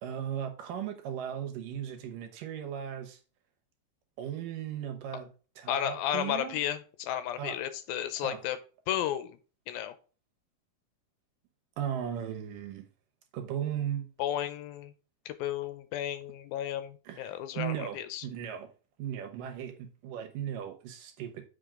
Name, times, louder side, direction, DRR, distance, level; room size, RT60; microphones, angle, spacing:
voice 1, 0.0-3.2 4.2-5.3 5.6-6.6 7.4-7.6 8.2-8.4 11.8-12.9 13.3-14.1 17.0-18.7 19.0-21.4, right 9 dB, 70° right, 2.5 m, -37 dB
voice 2, 5.7-8.6 8.9-9.4 9.7-9.9 14.2-14.9 15.3-18.2, left 11 dB, 85° left, 2.5 m, -33 dB
7.7 x 5.4 x 3.7 m
omnidirectional pair, 4.3 m